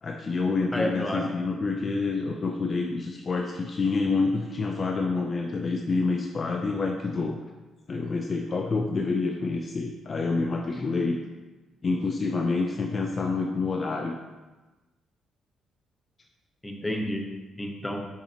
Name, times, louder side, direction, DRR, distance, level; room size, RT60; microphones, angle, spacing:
voice 1, 0.0-7.4 7.9-11.2 11.8-14.2, left 3 dB, 40° left, 3 dB, 0.5 m, -27 dB
voice 2, 0.7-1.3 16.6-18.0, left 1 dB, 10° left, 2 dB, 0.9 m, -30 dB
7.2 x 4.8 x 2.9 m, 1.2 s
cardioid pair, 90°, 0 cm